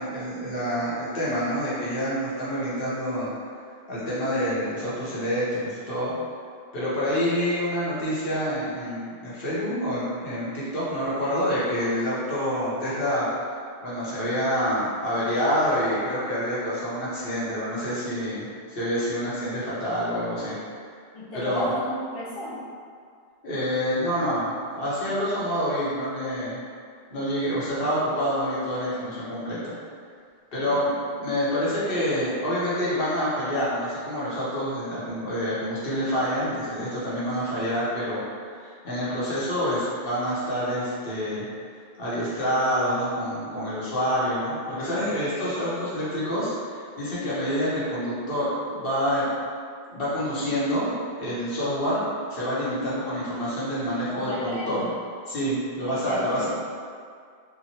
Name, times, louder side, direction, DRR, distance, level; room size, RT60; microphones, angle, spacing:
voice 1, 0.0-3.3 3.9-6.1 6.7-13.3 13.8-20.6 21.3-21.7 23.4-26.6 27.1-29.7 30.5-41.4 42.0-49.3 49.9-54.8 55.3-56.5, equal, 65° left, -9 dB, 1.1 m, -27 dB
voice 2, 21.1-22.7 30.7-30.8 54.1-55.0 56.0-56.5, equal, 40° left, -8 dB, 0.6 m, -34 dB
2.9 x 2.4 x 2.7 m, 2.2 s
omnidirectional pair, 1.0 m